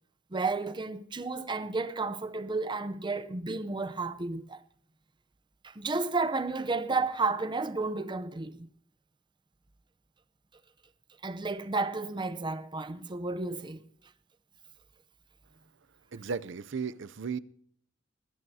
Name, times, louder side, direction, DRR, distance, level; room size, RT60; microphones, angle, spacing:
voice 1, 0.3-4.6 5.6-8.7 11.2-13.8, right 3 dB, 25° right, 0.7 m, -32 dB
voice 2, 16.1-17.4, right 5 dB, 65° right, 0.5 m, -35 dB
21.0 x 14.0 x 2.8 m
head